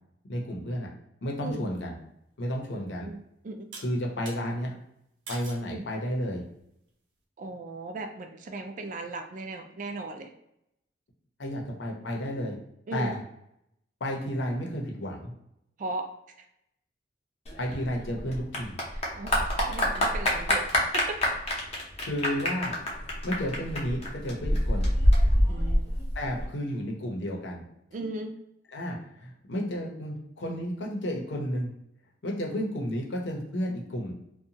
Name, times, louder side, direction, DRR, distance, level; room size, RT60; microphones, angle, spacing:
voice 1, 0.3-0.9 1.2-1.9 2.4-3.1 3.8-4.7 5.3-6.4 11.4-12.6 12.9-13.2 14.0-15.3 17.6-18.7 22.1-22.7 23.2-24.9 26.1-27.7 28.7-31.7 32.2-34.1, equal, 75° left, 0 dB, 0.7 m, -32 dB
sound 1, 2.4-2.5 3.7-4.4 5.3-5.7 6.3-6.7, right 3 dB, 80° right, 0.7 m, -43 dB
voice 2, 2.7-3.7 5.7-5.8 7.4-10.3 12.9-13.1 15.8-16.1 16.4-16.5 18.9-19.4 19.7-21.2 25.5-25.9 27.9-28.3, right 2 dB, 45° right, 5 dB, 0.3 m, -37 dB
Clapping / Applause, 17.5-26.4, left 1 dB, 35° left, 0.7 m, -26 dB
2.7 x 2.2 x 2.7 m, 0.79 s
head